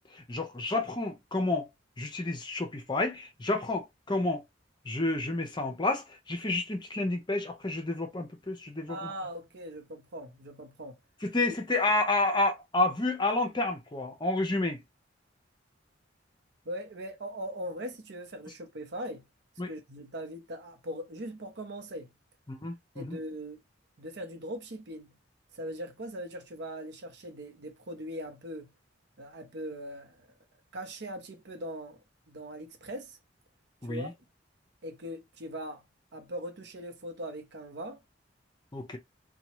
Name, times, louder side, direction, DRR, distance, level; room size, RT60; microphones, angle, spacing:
voice 1, 0.1-1.7 2.0-4.4 4.8-9.1 11.2-14.8 19.6-19.7 22.5-23.2 33.8-34.1 38.7-39.0, left 2 dB, 25° left, 0.7 m, -30 dB
voice 2, 8.9-11.0 16.7-19.3 19.7-22.1 23.0-23.6 24.0-25.1 25.5-28.7 29.2-30.3 30.7-32.0 32.3-33.2 33.9-34.1 34.8-35.8 36.1-38.0, equal, 65° right, 0.8 m, -40 dB
2.8 x 2.3 x 3.0 m
head